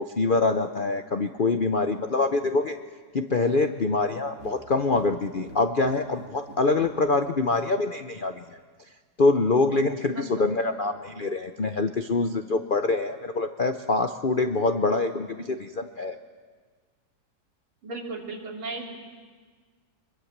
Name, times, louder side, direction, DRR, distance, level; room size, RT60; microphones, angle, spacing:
voice 1, 0.0-2.8 3.1-8.4 9.2-16.2, left 3 dB, 85° left, 8 dB, 0.4 m, -25 dB
sound 1, 4.2-7.0, right 2 dB, 45° right, 7.3 m, -46 dB
voice 2, 10.1-10.5 17.8-19.0, right 2 dB, 90° right, 0 dB, 3.9 m, -36 dB
25.0 x 22.0 x 7.4 m, 1.5 s
omnidirectional pair, 2.2 m